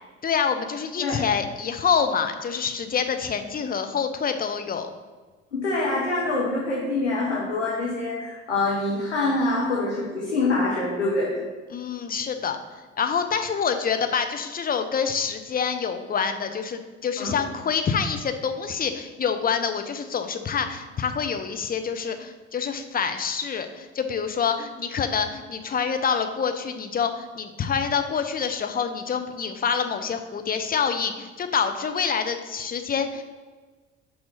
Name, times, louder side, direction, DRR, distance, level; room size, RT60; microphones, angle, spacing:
voice 1, 0.2-4.9 11.7-12.6 13.0-33.2, left 6 dB, 25° left, 7 dB, 0.8 m, -26 dB
voice 2, 5.5-11.3 17.2-17.3, left 2 dB, 85° left, -5 dB, 1.3 m, -25 dB
6.0 x 4.8 x 5.7 m, 1.3 s
figure-of-eight pair, 55°, 33 cm